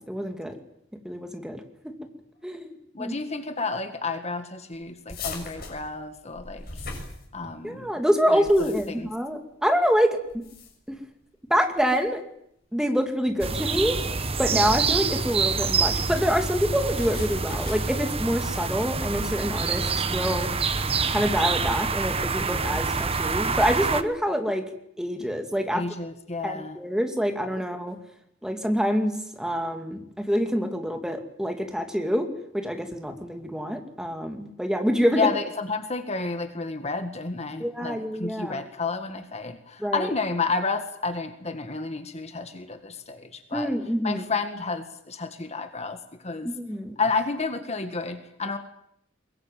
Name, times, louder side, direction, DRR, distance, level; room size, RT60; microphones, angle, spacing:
voice 1, 0.1-0.6 1.0-1.9 2.4-2.7 3.0-3.1 7.6-10.2 10.9-11.0 11.5-12.2 12.7-14.0 14.4-20.5 21.1-24.6 25.0-25.8 26.4-28.0 28.4-32.3 32.5-35.2 37.6-38.6 39.8-40.1 43.5-44.2 46.4-47.0, equal, 5° right, 5 dB, 2.5 m, -26 dB
voice 2, 2.9-6.8 7.3-7.9 8.3-9.1 25.7-26.8 35.1-43.7 44.0-46.5 47.0-48.6, left 4 dB, 35° left, 8 dB, 1.8 m, -31 dB
sound 1, 5.1-7.7 8.3-9.1 10.3-10.9 11.8-12.0 13.8-14.6 15.5-16.0 16.9-18.0, left 3 dB, 50° left, 7.0 m, -40 dB
sound 2, 13.4-24.0, right 4 dB, 30° right, 1.1 m, -26 dB
22.5 x 22.0 x 9.3 m, 0.73 s
head